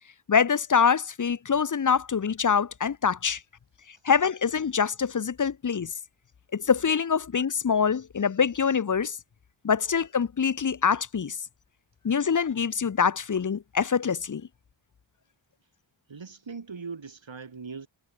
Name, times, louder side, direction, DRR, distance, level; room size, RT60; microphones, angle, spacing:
voice 1, 0.3-3.4 4.0-5.9 6.5-9.2 9.6-11.4 12.0-14.5, left 6 dB, 45° left, 0.7 m, -25 dB
voice 2, 16.1-17.9, right 5 dB, 80° right, 7.3 m, -40 dB
wide cardioid pair, 70°, 45 cm